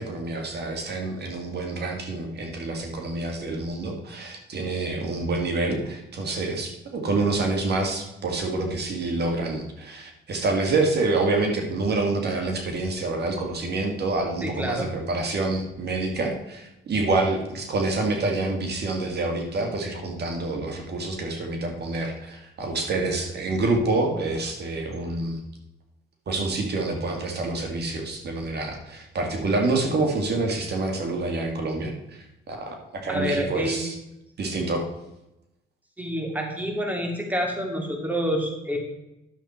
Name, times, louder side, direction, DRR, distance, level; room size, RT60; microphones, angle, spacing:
voice 1, 0.0-25.4 26.3-31.9 32.5-34.0 34.4-34.9, right 2 dB, 55° right, 2 dB, 2.0 m, -27 dB
voice 2, 14.4-14.9 33.1-33.8 36.0-38.8, equal, 10° right, 2 dB, 2.3 m, -28 dB
11.0 x 7.2 x 4.3 m, 0.91 s
cardioid pair, 90°, 20 cm